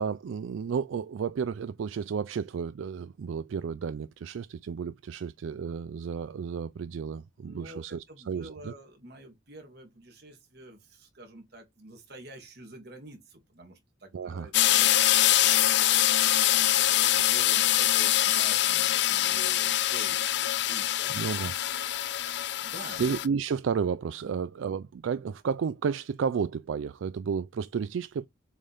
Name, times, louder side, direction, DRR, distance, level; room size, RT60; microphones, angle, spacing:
voice 1, 0.0-8.7 14.1-14.5 21.1-21.5 23.0-28.3, right 6 dB, 80° right, 0.4 m, -32 dB
voice 2, 7.4-15.3 16.6-21.2 22.3-23.0 24.2-24.4, right 1 dB, 55° right, 2.1 m, -48 dB
sound 1, 14.5-23.3, left 13 dB, 60° left, 0.4 m, -24 dB
7.2 x 3.4 x 4.1 m
head